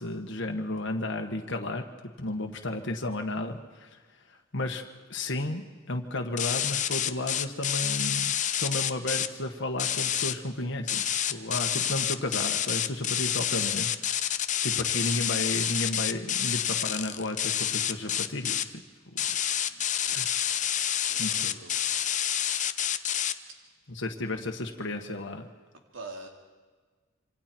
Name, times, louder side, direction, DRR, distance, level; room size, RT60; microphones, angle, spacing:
voice 1, 0.0-1.8 2.2-4.0 4.3-4.8 5.1-13.9 14.6-18.7 19.1-19.3 20.1-20.4 21.2-21.5 23.9-25.5, left 2 dB, 65° left, 3 dB, 1.6 m, -33 dB
sound 1, 6.4-9.3 9.8-10.3 10.9-18.6 19.2-23.3, left 10 dB, 40° left, 0.8 m, -28 dB
voice 2, 19.4-20.4 21.1-22.0 25.9-26.3, right 2 dB, 70° right, 2 dB, 3.0 m, -46 dB
27.0 x 25.5 x 4.6 m, 1.4 s
head